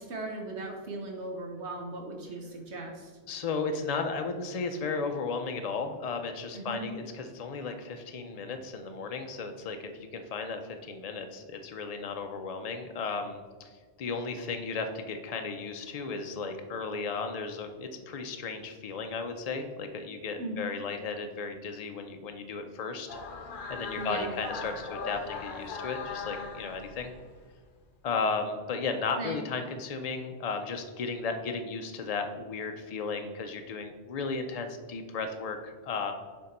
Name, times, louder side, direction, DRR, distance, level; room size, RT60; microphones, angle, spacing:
voice 1, 0.0-3.1 6.5-6.9 20.4-20.6 24.0-24.3 29.2-29.4, right 2 dB, 65° right, 1 dB, 1.1 m, -38 dB
voice 2, 3.3-23.1 23.7-27.1 28.0-36.1, left 4 dB, 70° left, 6 dB, 0.3 m, -35 dB
sound 1, 23.1-27.4, left 4 dB, 50° left, 0.7 m, -39 dB
6.5 x 3.7 x 4.1 m, 1.5 s
omnidirectional pair, 1.2 m